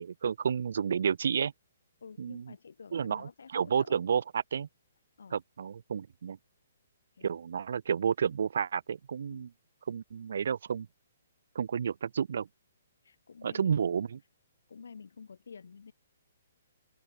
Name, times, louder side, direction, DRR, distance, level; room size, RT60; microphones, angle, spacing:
voice 1, 0.0-1.5 2.2-2.4 2.9-4.7 5.3-6.4 7.2-9.5 9.9-10.9 11.5-12.5 13.4-14.2, right 7 dB, 65° right, 0.4 m, -31 dB
voice 2, 2.0-4.0 5.2-5.4 7.1-7.4 9.3-9.5 13.0-13.8 14.7-15.9, left 5 dB, 85° left, 2.1 m, -50 dB
open air
hypercardioid pair, 165°, 0 cm